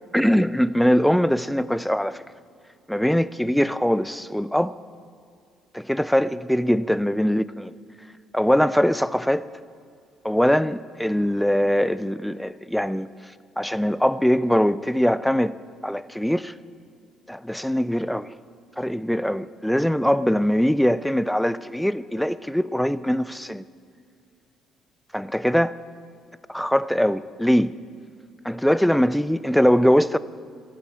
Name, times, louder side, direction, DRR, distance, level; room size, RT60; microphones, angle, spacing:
voice 1, 0.0-2.2 2.9-4.7 5.7-7.8 8.3-9.5 10.2-15.5 15.8-16.5 17.3-18.3 18.8-23.6 25.1-25.8 26.5-27.8 28.4-30.2, equal, ahead, 0.4 m, -22 dB
12.5 x 8.4 x 8.1 m
cardioid pair, 95°, 0 cm